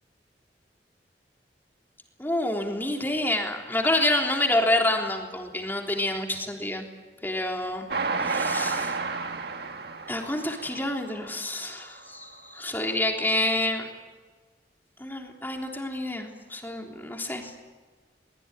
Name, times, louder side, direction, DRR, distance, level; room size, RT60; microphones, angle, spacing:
voice 1, 2.2-6.9 7.2-7.9 8.2-9.0 10.1-13.9 15.0-17.5, left 1 dB, 10° left, 2 dB, 3.5 m, -28 dB
Train, 7.9-11.4 11.9-12.0 12.2-12.3, right 4 dB, 65° right, 1.7 m, -31 dB
24.0 x 21.0 x 9.9 m, 1.3 s
head